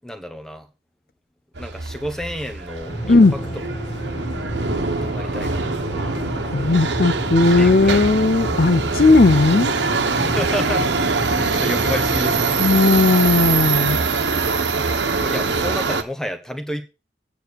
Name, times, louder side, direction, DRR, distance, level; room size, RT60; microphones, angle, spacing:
voice 1, 0.0-0.7 1.6-3.9 5.0-5.8 7.4-8.0 10.2-10.9 11.3-12.6 15.1-16.8, equal, 5° left, 1.3 m, -30 dB
Subway metro underground, 1.6-16.0, right 4 dB, 80° right, 1.2 m, -23 dB
sound 1, 2.8-12.7, equal, 35° left, 2.7 m, -31 dB
voice 2, 6.5-9.7 12.6-14.0, left 3 dB, 55° left, 0.6 m, -16 dB
9.3 x 6.2 x 6.9 m
head